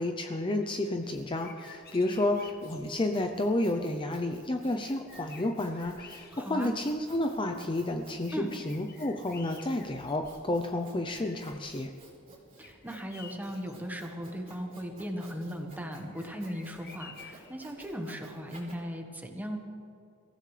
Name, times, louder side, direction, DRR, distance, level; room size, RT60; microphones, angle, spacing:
voice 1, 0.0-11.9, left 1 dB, 25° left, 4 dB, 0.6 m, -31 dB
Sawing, 0.7-18.8, right 2 dB, 30° right, 3.7 m, -55 dB
sound 1, 1.4-3.0 4.4-4.5 4.8-6.8 7.3-7.4 8.6-10.6 11.0-11.9 12.6-13.8 16.1-17.5, left 6 dB, 45° left, 1.1 m, -52 dB
voice 2, 6.3-6.7 8.3-8.5 12.6-19.6, equal, 10° right, 3 dB, 1.4 m, -37 dB
23.0 x 15.0 x 3.3 m, 2.5 s
head